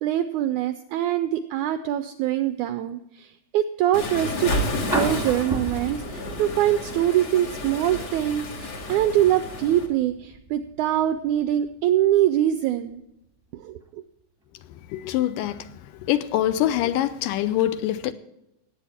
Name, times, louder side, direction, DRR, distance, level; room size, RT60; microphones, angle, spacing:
voice 1, 0.0-4.5 4.9-13.0 13.5-14.0, right 12 dB, 90° right, 1.7 m, -24 dB
Waves surf, 3.9-9.9, left 1 dB, 50° left, 2.7 m, -31 dB
sound 1, 4.4-12.4 13.9-14.0, right 1 dB, 20° right, 0.7 m, -35 dB
voice 2, 14.9-15.7 16.0-18.1, left 12 dB, 80° left, 2.2 m, -24 dB
18.0 x 8.3 x 4.2 m
omnidirectional pair, 4.0 m